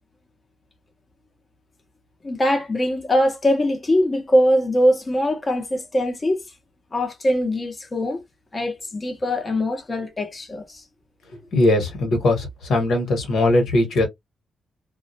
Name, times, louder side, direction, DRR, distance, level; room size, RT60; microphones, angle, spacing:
voice 1, 2.2-6.4 6.9-8.2 8.5-10.8, equal, 25° left, 0.7 m, -22 dB
voice 2, 11.5-14.1, left 2 dB, 80° left, 1.0 m, -20 dB
2.2 x 2.1 x 2.6 m
cardioid pair, 100°, 0 cm